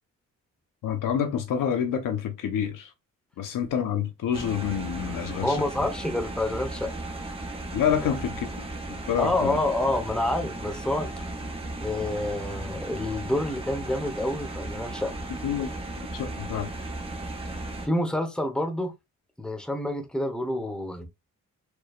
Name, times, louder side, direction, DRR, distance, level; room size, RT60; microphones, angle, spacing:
voice 1, 0.8-2.9 3.4-5.6 7.7-9.6 15.4-15.7 16.1-16.7, left 8 dB, 70° left, 1.0 m, -28 dB
sound 1, 4.3-17.9, right 2 dB, 15° right, 1.3 m, -36 dB
voice 2, 5.4-6.9 8.0-8.1 9.2-11.1 11.8-15.1 17.5-17.6 17.8-18.9 19.4-21.1, left 1 dB, ahead, 1.0 m, -28 dB
4.7 x 3.1 x 2.4 m
cardioid pair, 105°, 33 cm